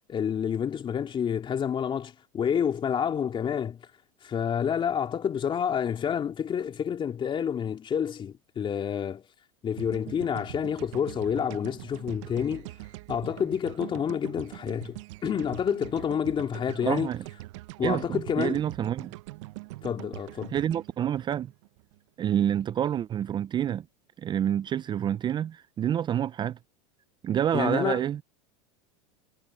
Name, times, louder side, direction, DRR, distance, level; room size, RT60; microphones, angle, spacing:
voice 1, 0.1-3.8 4.2-9.2 9.6-12.7 13.1-17.1 17.8-18.7 19.8-20.6 27.5-28.2, left 8 dB, 30° left, 3.0 m, -29 dB
sound 1, 9.8-22.0, right 20 dB, 70° right, 1.0 m, -43 dB
voice 2, 16.8-17.2 17.8-19.1 20.5-21.5 22.2-23.8 24.2-26.6 27.2-28.2, right 10 dB, 30° right, 0.5 m, -28 dB
hypercardioid pair, 105°, 16 cm